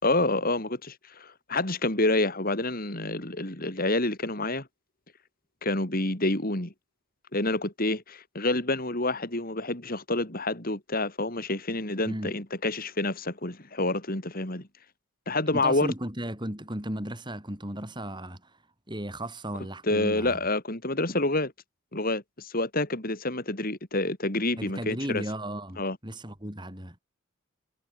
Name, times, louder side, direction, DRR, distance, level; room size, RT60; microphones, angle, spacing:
voice 1, 0.0-4.7 5.6-6.7 7.3-14.7 15.3-15.9 19.8-21.5 21.9-25.2 25.8-26.0, left 2 dB, 40° left, 3.3 m, -28 dB
voice 2, 15.5-18.6 18.9-20.4 24.6-27.0, right 1 dB, 20° right, 4.9 m, -35 dB
head